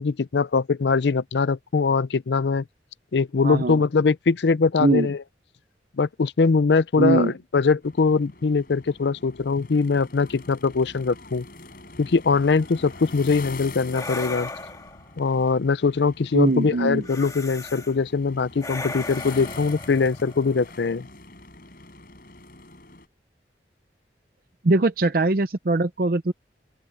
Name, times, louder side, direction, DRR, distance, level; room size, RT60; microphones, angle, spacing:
voice 1, 0.0-2.6 3.1-5.2 6.0-11.4 12.0-14.5 15.2-21.1, left 4 dB, 70° left, 0.5 m, -22 dB
voice 2, 3.4-3.8 4.8-5.1 7.0-7.3 16.3-17.0 24.6-26.3, right 3 dB, 55° right, 0.6 m, -21 dB
sound 1, 7.8-23.1, left 3 dB, 55° left, 4.9 m, -44 dB
sound 2, 12.7-13.0 13.9-15.1 17.0-17.9 18.6-20.8, left 3 dB, 20° left, 2.6 m, -37 dB
open air
head